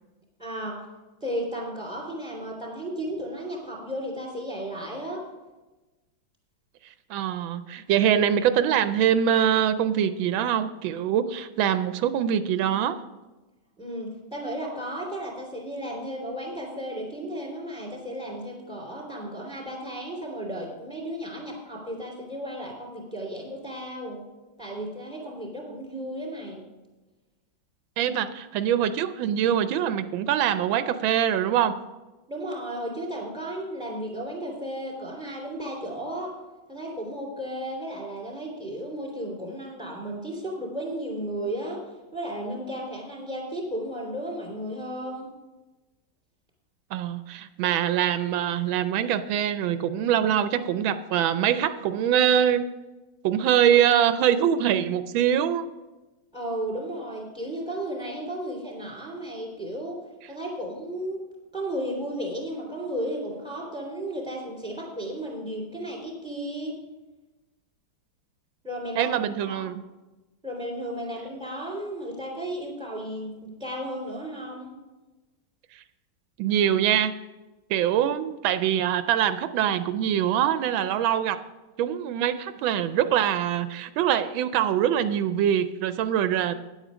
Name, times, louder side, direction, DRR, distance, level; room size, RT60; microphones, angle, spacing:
voice 1, 0.4-0.8 1.2-5.2 13.8-24.2 24.6-26.6 32.3-36.3 36.7-45.3 56.3-60.0 60.3-61.2 61.5-66.7 68.6-69.6 70.4-74.7, right 1 dB, ahead, -1 dB, 2.8 m, -34 dB
voice 2, 6.8-13.0 28.0-31.7 46.9-52.6 53.2-55.6 69.0-69.8 75.7-75.8 76.4-77.2 77.7-81.4 81.8-86.5, right 10 dB, 85° right, 11 dB, 1.3 m, -24 dB
9.8 x 8.2 x 5.0 m, 1.1 s
omnidirectional pair, 2.1 m